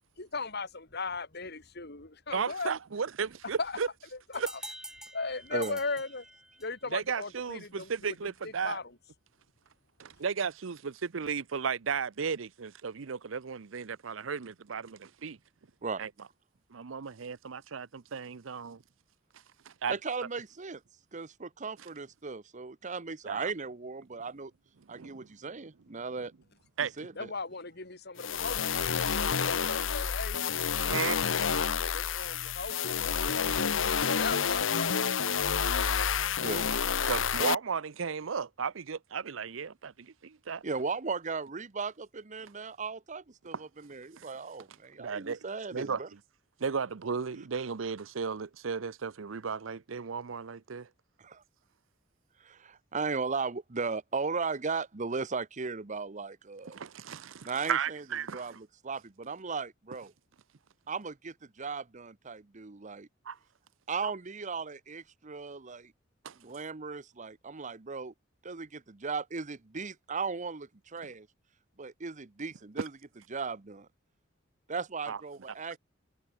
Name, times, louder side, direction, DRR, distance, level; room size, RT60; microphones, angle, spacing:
voice 1, 0.2-2.7 3.6-3.8 4.3-4.4 5.1-6.2 6.6-8.9 27.2-28.8 29.4-30.5 30.9-33.4 33.9-35.1, left 3 dB, 55° left, 4.8 m, -38 dB
voice 2, 2.3-3.9 4.3-4.5 6.9-8.8 10.0-15.4 16.0-16.1 16.7-18.8 19.7-19.9 23.3-23.5 24.9-25.3 26.8-26.9 29.1-29.2 30.9-31.4 35.8-35.9 37.0-40.6 43.5-43.6 44.2-44.3 45.0-45.4 45.7-46.0 46.6-50.9 56.7-58.6 63.3-63.4 66.2-66.4 75.1-75.2, right 6 dB, 85° right, 0.7 m, -35 dB
sound 1, 4.3-6.9, right 1 dB, 5° right, 7.3 m, -46 dB
voice 3, 19.9-20.8 21.1-24.5 24.9-26.3 27.0-27.1 36.4-36.7 36.9-37.1 40.6-46.1 51.2-51.4 52.4-56.8 57.4-58.0 58.3-60.1 60.9-63.1 63.9-65.9 66.4-68.1 68.4-71.3 71.8-72.9 73.3-73.9 74.7-75.8, right 4 dB, 40° right, 0.9 m, -37 dB
sound 2, 28.2-37.5, left 7 dB, 80° left, 0.9 m, -29 dB
head